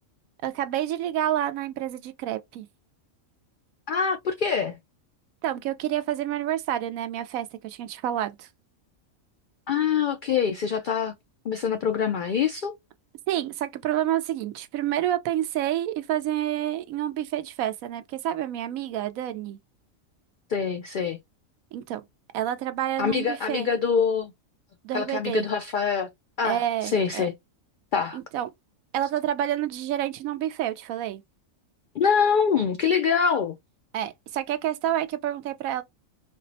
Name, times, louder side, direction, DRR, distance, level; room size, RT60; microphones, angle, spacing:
voice 1, 0.4-2.7 5.4-8.5 13.3-19.6 21.7-22.0 22.3-23.7 24.8-25.4 26.4-27.3 28.1-28.5 28.9-31.2 33.9-35.8, right 12 dB, 90° right, 1.0 m, -28 dB
voice 2, 3.9-4.8 9.7-11.1 11.5-12.7 20.5-21.2 23.0-24.3 24.9-26.1 26.4-27.3 27.9-28.2 32.0-33.6, left 6 dB, 85° left, 0.4 m, -24 dB
4.2 x 2.0 x 2.6 m
omnidirectional pair, 1.4 m